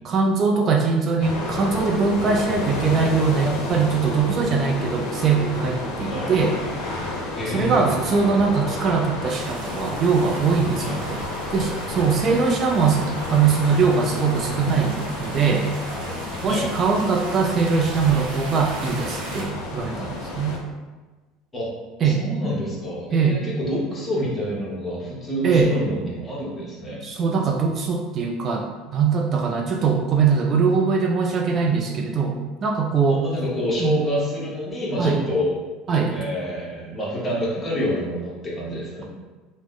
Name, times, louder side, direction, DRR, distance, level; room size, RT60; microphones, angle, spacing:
voice 1, 0.0-6.6 7.5-11.2 11.5-15.7 16.4-20.6 22.0-22.2 23.1-23.4 25.4-25.7 27.0-33.2 33.8-34.0 35.0-35.2 35.9-36.1, right 5 dB, 40° right, 1 dB, 0.3 m, -21 dB
sound 1, 1.2-20.6, left 2 dB, 75° left, 0.6 m, -31 dB
voice 2, 7.4-8.0 10.8-11.0 16.5-16.7 21.5-21.7 22.0-27.0 33.1-35.5 36.1-39.0, equal, 20° left, -5 dB, 1.1 m, -27 dB
sound 2, 9.3-19.4, right 2 dB, 85° right, 0.7 m, -38 dB
2.9 x 2.0 x 3.7 m, 1.3 s
supercardioid pair, 100°, 0 cm